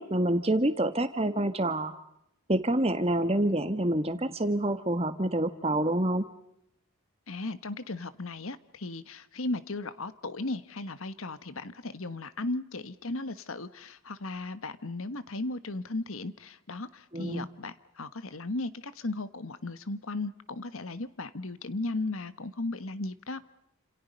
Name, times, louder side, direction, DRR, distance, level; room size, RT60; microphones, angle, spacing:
voice 1, 0.0-1.9 2.5-6.2 17.1-17.4, right 1 dB, 25° right, 10 dB, 1.6 m, -27 dB
voice 2, 7.3-23.4, left 2 dB, 70° left, 13 dB, 1.4 m, -36 dB
29.5 x 28.0 x 5.4 m, 0.78 s
head